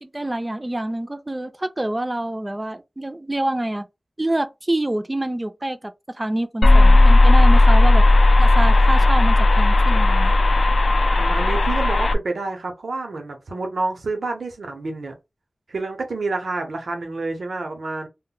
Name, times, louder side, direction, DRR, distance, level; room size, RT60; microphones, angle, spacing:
voice 1, 0.0-3.9 4.2-8.0 8.4-10.4, right 1 dB, 25° right, 0.3 m, -26 dB
sound 1, 6.6-12.1, left 2 dB, 70° left, 0.3 m, -14 dB
voice 2, 11.2-15.1 15.7-18.1, right 3 dB, 90° right, 0.7 m, -28 dB
2.1 x 2.1 x 3.8 m
wide cardioid pair, 85°, 0 cm